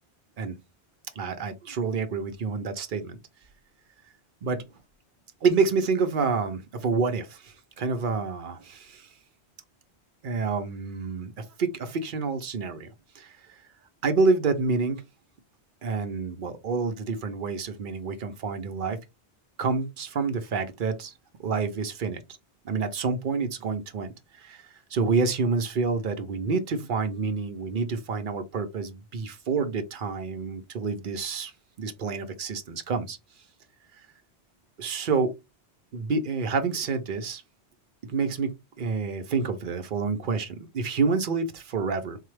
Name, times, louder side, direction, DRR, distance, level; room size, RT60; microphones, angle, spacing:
voice 1, 1.2-3.2 4.4-4.6 5.4-9.1 10.2-12.9 13.2-13.3 14.0-15.0 15.8-19.0 19.6-21.1 21.4-22.2 22.6-24.1 24.4-31.5 31.8-33.2 34.8-35.3 35.9-37.4 38.0-38.5 38.8-42.2, right 4 dB, 55° right, 0.8 m, -28 dB
4.0 x 2.3 x 3.2 m
omnidirectional pair, 1.1 m